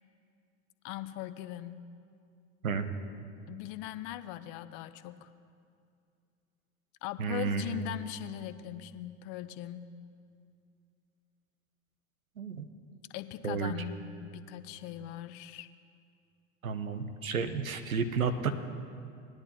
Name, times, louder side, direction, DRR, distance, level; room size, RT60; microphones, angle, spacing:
voice 1, 0.8-1.8 3.5-5.3 7.0-9.9 13.1-13.9 14.2-15.7, left 13 dB, 50° left, 13 dB, 0.6 m, -40 dB
voice 2, 7.2-7.8 12.4-12.7 13.4-13.7 16.6-18.5, right 6 dB, 85° right, 9 dB, 0.8 m, -32 dB
19.0 x 10.5 x 2.8 m, 2.4 s
figure-of-eight pair, 80°, 40 cm